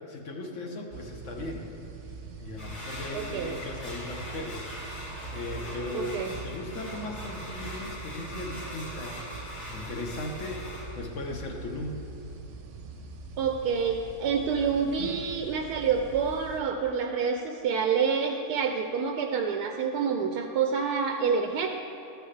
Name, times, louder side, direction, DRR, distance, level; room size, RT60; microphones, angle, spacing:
voice 1, 0.1-1.7 2.4-12.0, left 2 dB, 55° left, 1 dB, 1.2 m, -38 dB
sound 1, 0.9-16.6, right 4 dB, 60° right, 0.9 m, -43 dB
sound 2, 2.6-10.8, left 1 dB, 85° left, 3.3 m, -41 dB
voice 2, 3.1-3.6 5.9-6.3 13.4-21.7, right 6 dB, 85° right, 4 dB, 1.1 m, -28 dB
sound 3, 14.3-16.0, left 2 dB, 35° left, 1.1 m, -46 dB
13.0 x 8.3 x 3.3 m, 2.8 s
omnidirectional pair, 1.6 m